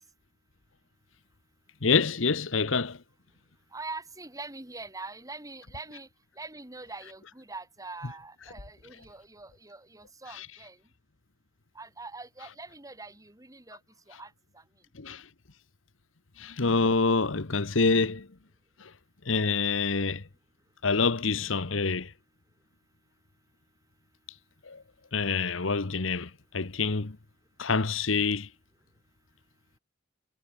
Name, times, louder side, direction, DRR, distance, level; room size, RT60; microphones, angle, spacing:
voice 1, 1.8-3.0 10.3-10.5 14.9-15.2 16.4-18.3 18.8-18.9 19.2-20.2 20.8-22.1 24.6-24.8 25.1-27.2 27.6-28.5, left 4 dB, 80° left, 1.2 m, -26 dB
voice 2, 3.7-6.1 6.4-10.8 11.8-13.8 14.1-14.6, right 3 dB, 20° right, 3.5 m, -43 dB
head